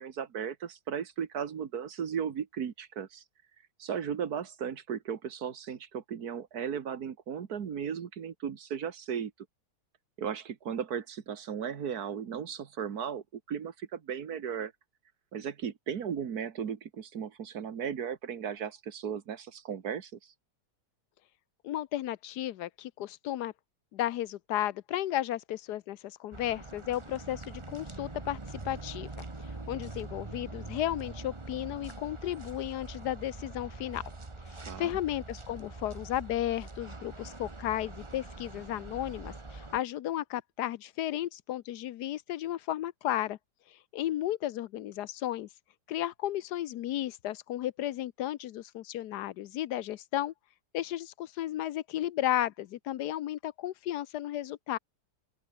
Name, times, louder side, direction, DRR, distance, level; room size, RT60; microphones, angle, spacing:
voice 1, 0.0-3.2 3.8-9.3 10.2-14.7 15.3-20.2 34.6-35.0, right 8 dB, 60° right, 1.9 m, -36 dB
voice 2, 21.6-23.5 23.9-34.0 34.8-43.4 43.7-45.5 45.9-50.3 50.7-54.8, left 13 dB, 75° left, 1.2 m, -34 dB
sound 1, 26.3-39.8, right 2 dB, 20° right, 1.4 m, -44 dB
open air
omnidirectional pair, 1.9 m